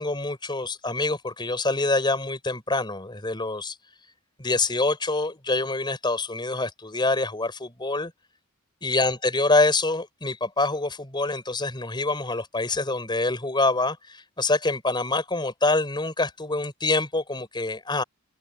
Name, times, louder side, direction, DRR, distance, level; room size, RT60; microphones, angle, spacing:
voice 1, 0.0-3.7 4.4-8.1 8.8-18.0, left 2 dB, 20° left, 4.7 m, -25 dB
head